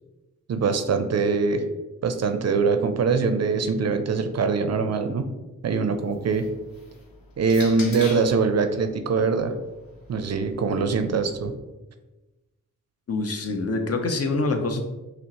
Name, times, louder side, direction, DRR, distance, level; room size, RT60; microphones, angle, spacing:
voice 1, 0.5-1.6 2.0-5.3 5.6-6.5 7.4-9.6 10.1-11.5, right 4 dB, 50° right, 8 dB, 0.5 m, -23 dB
sound 1, 6.0-8.4 9.4-11.5, left 3 dB, 85° left, 0.8 m, -43 dB
voice 2, 13.1-14.8, left 3 dB, 45° left, 5 dB, 0.6 m, -25 dB
5.5 x 2.0 x 2.9 m, 1.1 s
supercardioid pair, 45°, 33 cm